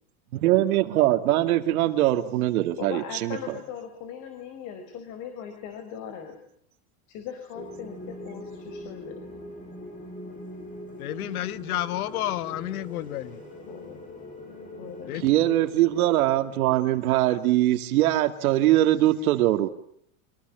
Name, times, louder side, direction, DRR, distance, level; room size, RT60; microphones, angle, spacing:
voice 1, 0.3-3.6 15.1-19.7, right 14 dB, 80° right, 8 dB, 2.5 m, -22 dB
voice 2, 2.8-6.4 7.1-9.2 13.7-14.0 14.8-15.2, left 8 dB, 40° left, 8 dB, 4.7 m, -39 dB
sound 1, 7.5-17.7, left 1 dB, 20° left, 7.4 m, -42 dB
voice 3, 11.0-13.4 15.1-15.3, left 14 dB, 85° left, 14 dB, 1.7 m, -31 dB
26.5 x 19.5 x 9.2 m, 0.68 s
supercardioid pair, 160°, 43 cm